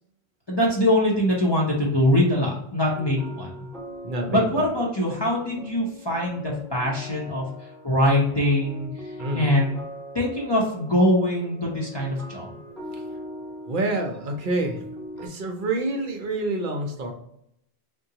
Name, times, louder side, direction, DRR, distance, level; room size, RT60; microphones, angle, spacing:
voice 1, 0.5-3.5 4.3-7.4 7.8-8.9 9.3-9.8 10.1-12.6, left 1 dB, 30° left, -4 dB, 0.5 m, -23 dB
sound 1, 2.8-15.3, equal, ahead, 0.8 m, -41 dB
voice 2, 4.0-4.6 9.2-9.5 13.7-14.8 15.2-17.1, right 2 dB, 55° right, 3 dB, 0.7 m, -27 dB
3.6 x 2.3 x 2.7 m, 0.74 s
omnidirectional pair, 1.1 m